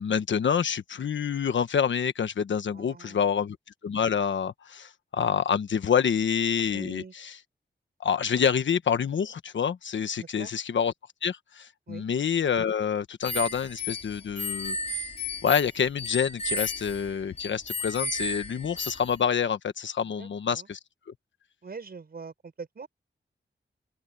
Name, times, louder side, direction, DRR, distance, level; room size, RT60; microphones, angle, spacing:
voice 1, 0.0-3.6 3.8-7.3 8.0-10.9 11.2-15.1 15.4-20.8, left 7 dB, 85° left, 1.2 m, -27 dB
voice 2, 2.7-3.3 6.7-7.1 10.2-10.5 11.9-12.1 20.2-20.7 21.6-22.9, right 5 dB, 55° right, 5.8 m, -43 dB
sound 1, 13.2-19.2, left 2 dB, 35° left, 4.4 m, -34 dB
open air
wide cardioid pair, 110°, 19 cm